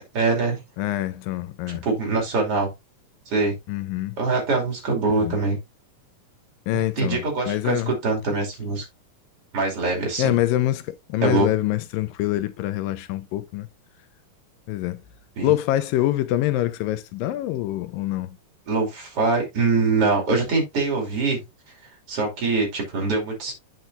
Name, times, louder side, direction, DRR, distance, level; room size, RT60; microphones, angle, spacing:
voice 1, 0.1-0.6 1.7-2.7 3.3-3.5 4.2-5.6 6.7-8.9 9.5-10.3 11.2-11.5 15.4-15.5 18.7-21.4 22.1-23.5, right 3 dB, 45° right, 3.4 m, -23 dB
voice 2, 0.8-1.8 3.7-4.2 5.1-5.4 6.7-7.9 10.2-13.7 14.7-15.0 15.4-18.4, left 14 dB, 90° left, 2.4 m, -25 dB
9.0 x 6.2 x 2.6 m
omnidirectional pair, 3.9 m